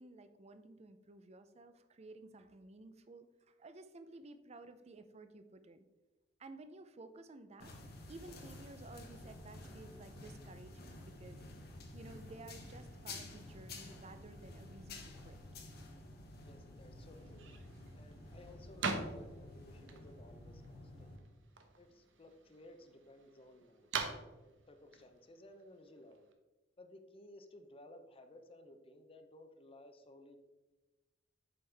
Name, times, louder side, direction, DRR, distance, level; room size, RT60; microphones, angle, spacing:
voice 1, 0.0-5.9 6.4-7.7 8.1-11.4 11.9-15.4, right 2 dB, 35° right, 10 dB, 0.5 m, -54 dB
sound 1, 7.6-21.2, left 2 dB, 55° left, 1.1 m, -51 dB
voice 2, 16.4-17.5 17.9-21.2 21.8-23.9 24.7-26.3 26.8-30.4, left 1 dB, 30° left, 7 dB, 0.6 m, -58 dB
sound 2, 17.2-26.3, right 4 dB, 80° right, 0.9 m, -45 dB
7.8 x 5.4 x 3.4 m, 1.1 s
head